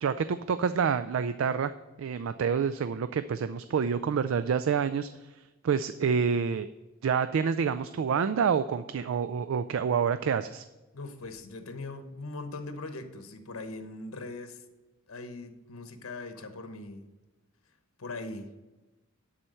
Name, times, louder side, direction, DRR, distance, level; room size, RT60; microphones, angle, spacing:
voice 1, 0.0-1.7 2.0-5.1 5.6-6.7 7.0-10.6, right 6 dB, 65° right, 11 dB, 0.3 m, -27 dB
voice 2, 10.9-14.6 15.1-17.0 18.0-18.5, left 2 dB, 85° left, 8 dB, 1.0 m, -40 dB
11.5 x 4.3 x 6.5 m, 1.1 s
head